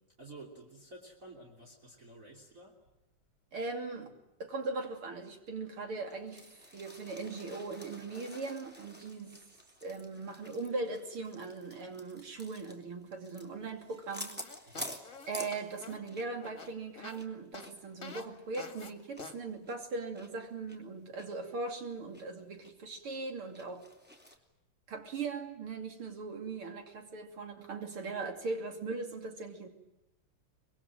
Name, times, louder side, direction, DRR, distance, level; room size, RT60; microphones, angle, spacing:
voice 1, 0.2-2.8 14.7-14.9, right 2 dB, 35° right, -1 dB, 3.7 m, -51 dB
voice 2, 3.5-4.1 4.4-9.4 9.8-14.4 14.9-23.9 24.9-29.7, right 3 dB, 75° right, 5 dB, 3.7 m, -39 dB
sound 1, 6.1-16.3 16.6-16.7 17.1-20.3 20.7-20.8 21.2-21.3 21.7-22.2 22.6-22.7 23.1-24.4, left 1 dB, 5° right, 2.7 m, -49 dB
sound 2, 14.4-17.2 17.5-17.7 18.0-18.3 18.6-18.9 19.2-19.4, left 5 dB, 40° left, 2.3 m, -47 dB
25.5 x 21.5 x 9.1 m, 0.92 s
omnidirectional pair, 2.4 m